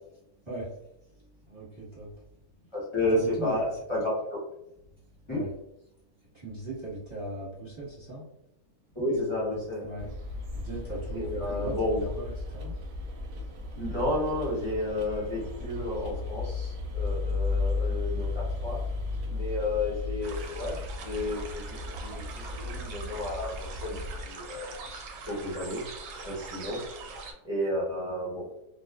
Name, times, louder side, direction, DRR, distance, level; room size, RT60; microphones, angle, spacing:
voice 1, 1.5-2.1 3.1-3.6 5.3-5.5 6.3-8.3 9.8-10.1 10.5-12.8 13.7-14.0, right 2 dB, 20° right, -8 dB, 0.9 m, -38 dB
voice 2, 2.7-4.4 5.3-5.4 8.9-9.9 11.1-12.0 13.8-18.8 19.3-24.0 24.2-24.8 25.3-25.8 26.1-26.8 27.4-28.5, left 1 dB, 25° left, -8 dB, 0.6 m, -31 dB
sound 1, 10.0-24.3, left 3 dB, 70° right, 0.9 m, -34 dB
sound 2, 20.2-27.3, right 3 dB, 90° right, 1.1 m, -42 dB
2.4 x 2.3 x 2.3 m, 0.82 s
omnidirectional pair, 1.6 m